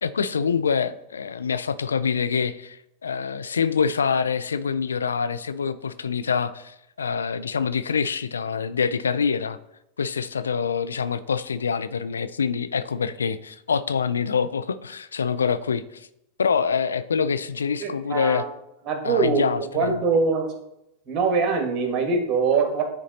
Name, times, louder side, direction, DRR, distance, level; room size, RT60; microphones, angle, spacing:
voice 1, 0.0-9.6 10.0-16.1 16.4-18.4 19.0-20.0, left 6 dB, 80° left, 13 dB, 0.3 m, -25 dB
voice 2, 17.8-18.5 18.9-19.5 19.7-20.5 21.1-22.8, right 4 dB, 40° right, 3 dB, 1.5 m, -23 dB
9.4 x 3.9 x 2.8 m, 0.82 s
hypercardioid pair, 90°, 0 cm